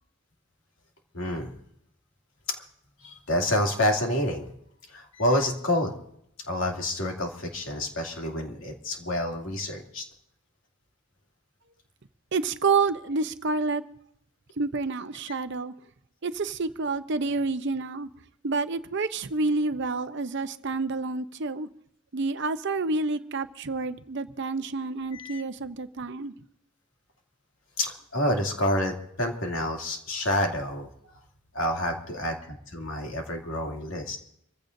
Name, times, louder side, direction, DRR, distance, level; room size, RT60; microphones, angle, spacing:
voice 1, 1.1-1.6 3.0-4.5 4.9-5.9 6.5-10.0 25.1-25.4 27.8-30.9 31.5-32.4 32.7-34.2, left 1 dB, 60° left, 2.7 m, -28 dB
voice 2, 12.3-13.8 14.6-15.7 16.2-18.1 18.4-21.7 22.1-26.3, right 3 dB, 50° right, 0.7 m, -28 dB
26.5 x 15.5 x 2.7 m
head